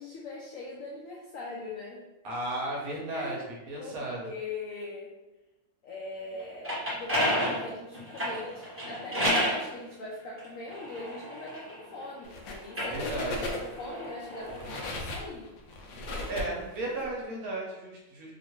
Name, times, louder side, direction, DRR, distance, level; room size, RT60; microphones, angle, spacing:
voice 1, 0.0-2.0 3.1-3.4 3.8-5.1 5.8-15.5, left 2 dB, 90° left, -4 dB, 0.7 m, -41 dB
voice 2, 2.2-3.4 3.7-4.2 12.9-13.5 16.3-18.3, right 2 dB, 65° right, -3 dB, 1.0 m, -34 dB
sound 1, 6.4-9.6 10.4-12.1 12.6-14.9, equal, 15° right, 0.5 m, -31 dB
sound 2, 12.2-12.6 12.9-13.9 14.4-17.0, left 2 dB, 70° left, 1.1 m, -36 dB
2.8 x 2.8 x 2.9 m, 1.0 s
omnidirectional pair, 2.0 m